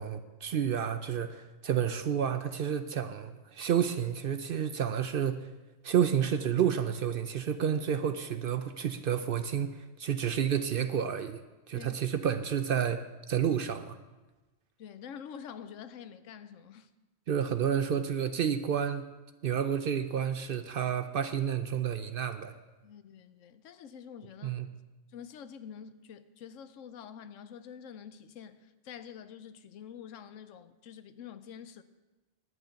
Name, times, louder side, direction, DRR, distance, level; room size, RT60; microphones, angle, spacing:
voice 1, 0.0-5.5 5.8-11.4 11.7-13.0 13.3-14.0 17.3-19.1 19.4-22.5 24.4-24.7, right 8 dB, 60° right, 0.7 m, -30 dB
voice 2, 11.7-12.2 14.8-16.9 22.8-24.6 25.1-31.8, left 8 dB, 85° left, 1.0 m, -47 dB
11.0 x 9.2 x 5.8 m
omnidirectional pair, 1.3 m